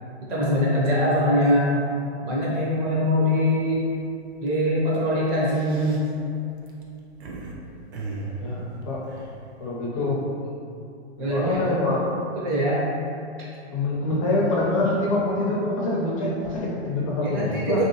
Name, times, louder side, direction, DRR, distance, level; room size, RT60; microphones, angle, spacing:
voice 1, 0.3-1.8 2.2-3.8 4.4-6.0 11.2-11.7 12.3-12.8 17.2-17.9, equal, 20° right, -7 dB, 0.5 m, -22 dB
sound 1, 3.6-3.9 4.3-4.5 5.2-7.5 7.9-9.7, right 3 dB, 70° right, 0.6 m, -37 dB
voice 2, 8.4-9.0 9.6-10.2 11.2-12.0 13.7-17.8, left 2 dB, 30° left, -5 dB, 0.4 m, -25 dB
3.0 x 2.7 x 2.7 m, 2.6 s
hypercardioid pair, 155°, 34 cm